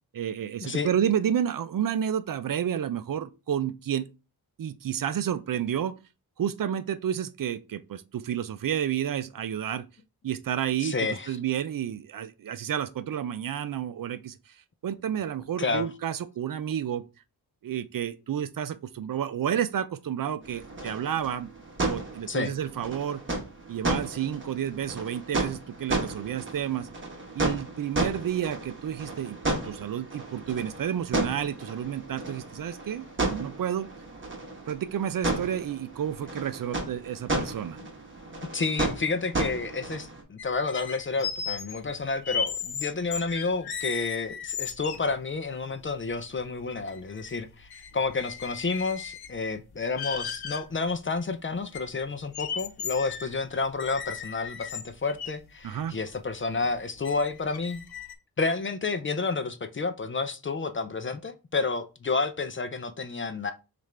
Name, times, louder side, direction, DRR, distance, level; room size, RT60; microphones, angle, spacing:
voice 1, 0.1-4.1 4.6-6.0 6.4-9.8 10.2-14.6 14.8-17.0 17.6-21.5 21.9-23.2 23.7-26.9 27.3-33.9 34.7-37.8 55.6-56.0, right 9 dB, 60° right, 0.5 m, -30 dB
voice 2, 10.8-11.4 15.6-15.9 22.3-22.5 37.8-37.9 38.5-57.8 58.4-63.5, left 4 dB, 35° left, 0.4 m, -30 dB
sound 1, 20.4-40.2, right 2 dB, 30° right, 1.1 m, -33 dB
sound 2, 40.4-45.1 45.7-45.8 46.1-47.4 47.7-49.4 49.8-50.6 51.2-51.3 51.7-55.3 56.0-56.1 56.6-56.7 57.0-58.1, left 7 dB, 75° left, 0.7 m, -36 dB
6.4 x 2.5 x 3.2 m
wide cardioid pair, 120°, 38 cm